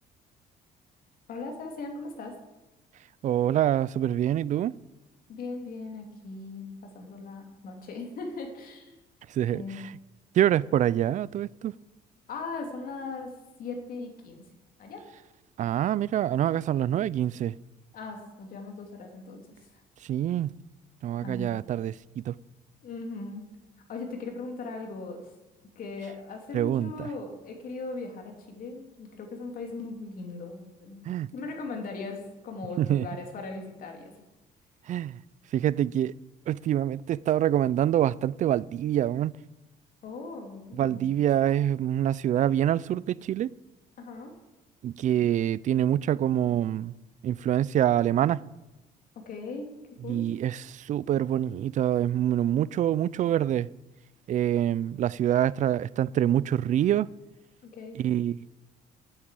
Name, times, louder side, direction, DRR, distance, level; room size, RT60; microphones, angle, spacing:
voice 1, 1.3-2.3 5.3-8.9 9.5-9.8 12.3-13.3 13.6-14.4 14.8-15.0 17.9-19.5 21.2-21.6 22.8-23.4 23.9-25.2 25.8-31.0 31.3-34.1 40.0-41.1 44.0-44.3 49.3-49.7 50.0-50.3 57.6-58.0, left 3 dB, 55° left, 2.7 m, -38 dB
voice 2, 3.2-4.7 9.3-9.6 10.4-11.7 15.6-17.5 20.1-20.5 21.0-22.4 26.5-27.1 31.1-31.3 32.8-33.1 34.9-35.2 35.5-36.1 36.5-39.4 40.8-43.5 44.8-46.9 47.2-48.4 50.1-53.7 54.3-57.1 58.0-58.5, right 11 dB, 50° right, 0.4 m, -25 dB
8.8 x 7.7 x 8.3 m
cardioid pair, 110°, 17 cm